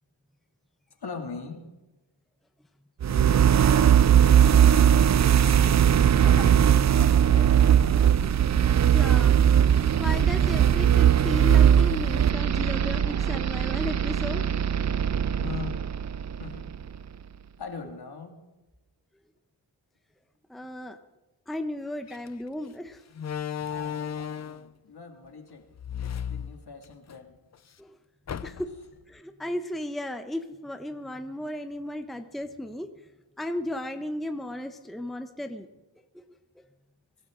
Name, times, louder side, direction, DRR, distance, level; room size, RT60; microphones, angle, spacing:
voice 1, 1.0-1.6 3.1-3.8 4.3-6.6 6.9-8.2 15.4-15.8 16.4-16.7 17.6-18.4 23.7-25.7 26.0-27.4, left 5 dB, 55° left, 3 dB, 2.6 m, -41 dB
sound 1, 3.0-16.9, right 9 dB, 40° right, 0.5 m, -20 dB
voice 2, 8.8-9.4 10.0-14.5 20.5-21.0 21.5-23.0 27.8-28.0 28.4-28.7 29.1-32.9 33.4-35.7 36.1-36.2, left 1 dB, ahead, 7 dB, 0.9 m, -35 dB
Slam, 22.1-22.3 23.1-24.7 25.7-27.2 27.5-27.6 28.3-28.9, left 8 dB, 35° left, 0.5 m, -34 dB
23.0 x 12.0 x 3.9 m, 1.1 s
cardioid pair, 75°, 45 cm